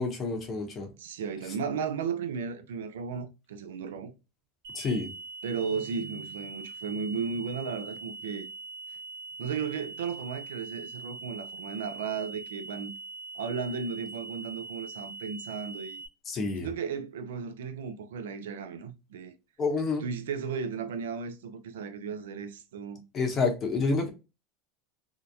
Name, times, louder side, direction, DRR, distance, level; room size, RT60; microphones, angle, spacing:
voice 1, 0.0-0.9 4.7-5.1 16.3-16.7 19.6-20.0 23.1-24.1, left 4 dB, 35° left, 0.7 m, -28 dB
voice 2, 1.0-4.1 5.4-8.5 9.4-12.9 13.3-16.0 16.6-19.3 20.0-23.0, right 6 dB, 90° right, 0.4 m, -35 dB
sound 1, 4.6-16.1, right 3 dB, 75° right, 0.8 m, -43 dB
2.7 x 2.0 x 2.3 m
supercardioid pair, 115°, 0 cm